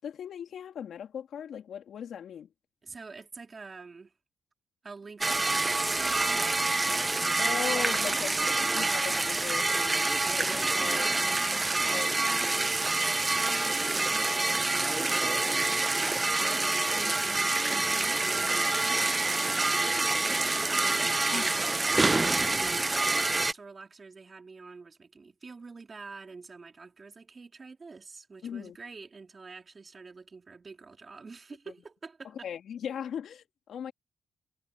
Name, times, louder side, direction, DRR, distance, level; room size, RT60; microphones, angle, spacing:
voice 1, 0.0-2.5 7.4-11.4 11.9-12.2 21.3-21.5 28.4-28.8 32.4-33.9, left 8 dB, 70° left, 3.0 m, -38 dB
voice 2, 2.8-4.1 4.8-6.5 10.7-11.1 11.5-22.2 22.5-32.5, right 4 dB, 40° right, 4.5 m, -47 dB
sound 1, 5.2-23.5, right 2 dB, 25° right, 0.5 m, -27 dB
cardioid pair, 65°, 0 cm